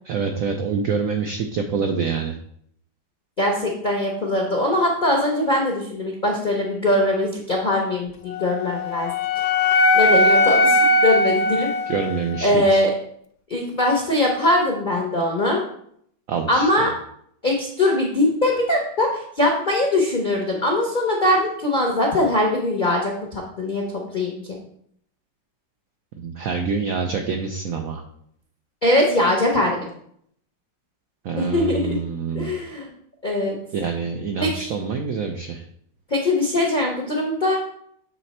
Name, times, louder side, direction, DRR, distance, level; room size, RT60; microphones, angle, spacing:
voice 1, 0.0-2.4 11.9-12.9 16.3-16.9 26.2-28.0 31.2-32.6 33.7-35.6, right 5 dB, 80° right, 5 dB, 0.7 m, -26 dB
voice 2, 3.4-9.1 9.9-11.7 12.4-12.9 13.5-15.6 16.5-16.9 17.4-24.6 28.8-29.9 31.4-32.0 32.3-32.9 33.2-33.6 34.4-34.7 36.1-37.6, left 1 dB, 45° left, -1 dB, 0.6 m, -21 dB
Wind instrument woodwind instrument, 8.3-12.5, left 1 dB, 90° left, 1.3 m, -19 dB
7.5 x 3.3 x 4.1 m, 0.68 s
omnidirectional pair, 2.1 m